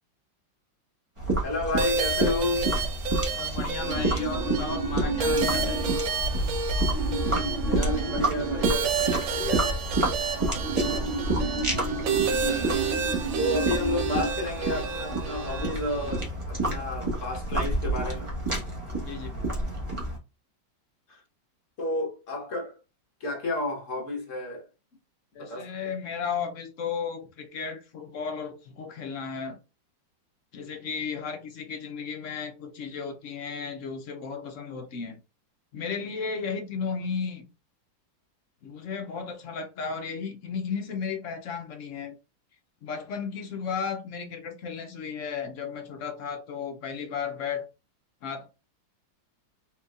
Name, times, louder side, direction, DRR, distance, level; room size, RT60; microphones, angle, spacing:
sound 1, 1.2-20.2, right 2 dB, 20° right, 0.9 m, -29 dB
voice 1, 1.4-2.7 7.6-9.8 10.3-10.4 12.6-13.0 13.4-18.3 21.1-21.2 21.8-22.8 23.2-24.6 25.4-25.7, left 2 dB, 50° left, 1.2 m, -31 dB
sound 2, 1.8-16.2, right 5 dB, 85° right, 1.5 m, -31 dB
voice 2, 3.4-5.8 19.0-19.6 25.3-29.6 30.5-35.2 35.7-37.5 38.6-42.1 42.8-47.7 48.2-48.5, left 6 dB, 75° left, 0.7 m, -34 dB
sound 3, 3.8-15.7, right 3 dB, 50° right, 1.0 m, -33 dB
4.4 x 3.3 x 2.4 m
omnidirectional pair, 2.0 m